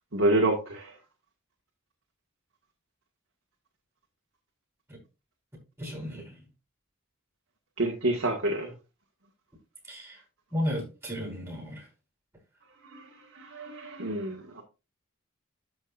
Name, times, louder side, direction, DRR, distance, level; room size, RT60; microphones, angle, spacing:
voice 1, 0.1-0.9 7.8-8.7 12.9-13.0 13.4-14.6, right 1 dB, 80° right, 1.9 m, -28 dB
voice 2, 5.8-6.5 9.8-10.2 10.5-11.9, left 1 dB, 15° right, 4.6 m, -34 dB
13.0 x 5.6 x 2.6 m
head